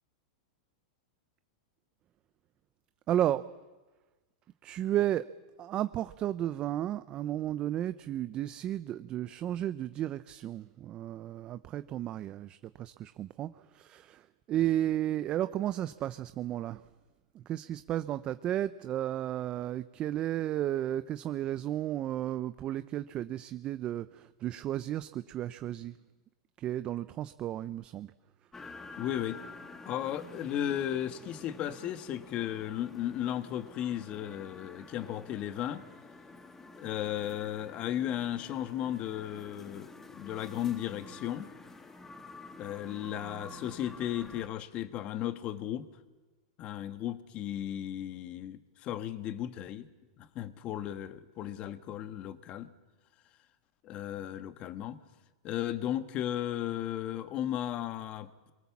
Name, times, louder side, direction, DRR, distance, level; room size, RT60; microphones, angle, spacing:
voice 1, 3.1-3.5 4.6-5.3 5.6-16.8 17.3-25.9 26.6-28.1, right 12 dB, 30° right, 0.7 m, -33 dB
sound 1, 28.5-44.5, left 3 dB, 10° left, 1.7 m, -49 dB
voice 2, 29.0-29.4 29.8-35.8 36.8-41.5 42.6-45.8 46.6-49.9 50.2-52.7 53.8-55.0 55.4-58.5, left 11 dB, 35° left, 1.5 m, -35 dB
24.5 x 23.0 x 7.3 m
hypercardioid pair, 135°, 3 cm